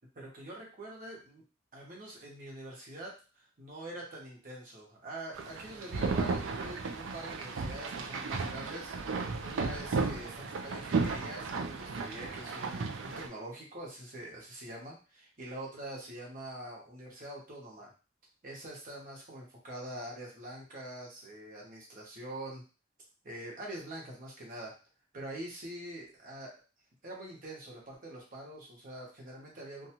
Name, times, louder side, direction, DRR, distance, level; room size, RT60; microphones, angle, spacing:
voice 1, 0.2-1.4 1.7-17.9 18.4-22.6 23.2-24.8 25.1-26.5 27.0-29.9, right 1 dB, 45° right, -2 dB, 1.0 m, -45 dB
sound 1, 5.4-13.3, right 4 dB, 70° right, 0.4 m, -34 dB
2.6 x 2.3 x 2.8 m, 0.33 s
head